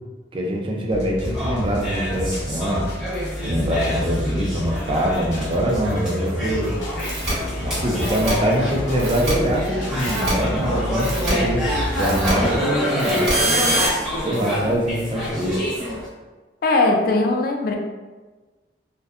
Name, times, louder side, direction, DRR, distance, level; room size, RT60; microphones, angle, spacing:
voice 1, 0.3-2.9 3.4-6.8 7.6-11.7 12.0-13.2 14.2-15.6, equal, 30° right, -1 dB, 0.4 m, -24 dB
sound 1, 0.9-12.6, equal, 90° left, 0.7 m, -30 dB
sound 2, 1.2-16.1, equal, 5° right, 0.7 m, -27 dB
sound 3, 7.0-7.3 8.0-8.3 9.0-9.3 10.0-10.3 11.0-11.3 12.0-12.3 13.0-13.9, right 1 dB, 65° right, 0.8 m, -24 dB
voice 2, 16.6-17.8, left 2 dB, 55° left, 2 dB, 0.4 m, -19 dB
2.6 x 2.1 x 2.4 m, 1.3 s
head